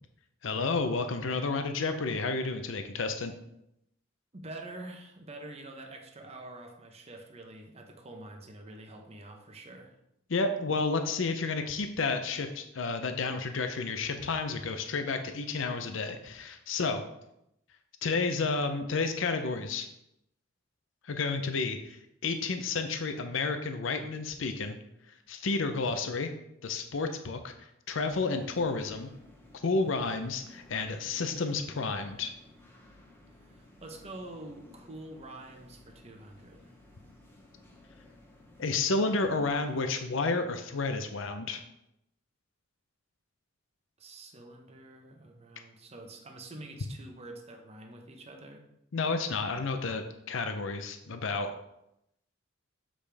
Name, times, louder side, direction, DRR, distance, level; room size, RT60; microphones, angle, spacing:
voice 1, 0.4-3.3 10.3-17.0 18.0-19.9 21.0-24.8 25.3-26.3 26.6-29.1 29.6-32.3 38.6-41.6 48.9-51.5, left 3 dB, 70° left, 7 dB, 0.6 m, -31 dB
voice 2, 4.3-10.0 33.4-36.7 44.0-48.6, right 2 dB, 30° right, 3 dB, 0.9 m, -46 dB
sound 1, 27.9-39.9, left 1 dB, 10° left, 1.0 m, -56 dB
7.4 x 5.0 x 3.4 m, 0.81 s
head